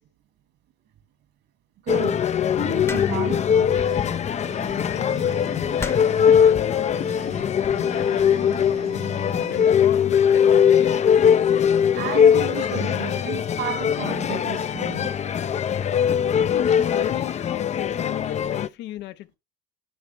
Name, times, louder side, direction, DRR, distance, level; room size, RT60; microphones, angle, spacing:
voice 1, 1.8-2.3 2.6-3.8 9.4-9.8 11.6-15.2, right 9 dB, 65° right, 2.5 m, -33 dB
sound 1, 1.9-18.7, left 8 dB, 35° left, 0.6 m, -21 dB
sound 2, 2.9-3.4 4.6-4.9 5.8-6.3 7.2-7.6, left 2 dB, 15° left, 1.0 m, -36 dB
sound 3, 3.7-6.5 6.9-9.7, right 7 dB, 35° right, 1.2 m, -40 dB
voice 2, 4.8-5.4 6.4-7.3 7.9-8.7 9.5-11.0 16.4-19.3, left 14 dB, 65° left, 0.9 m, -36 dB
10.5 x 4.1 x 3.4 m
hypercardioid pair, 75°, 19 cm